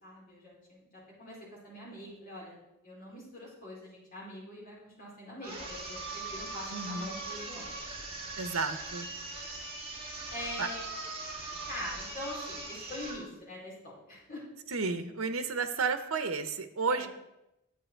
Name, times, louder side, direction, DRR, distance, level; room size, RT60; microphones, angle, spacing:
voice 1, 0.0-1.4 1.6-2.6 2.8-7.8 10.3-10.9 11.7-14.4 16.9-17.1, left 1 dB, 45° left, -5 dB, 4.6 m, -43 dB
sound 1, 5.4-13.2, right 3 dB, 30° right, 2.9 m, -40 dB
voice 2, 6.7-7.1 8.4-9.1 10.6-10.7 14.7-17.1, right 4 dB, 85° right, 10 dB, 0.8 m, -32 dB
10.5 x 8.4 x 4.5 m, 0.90 s
head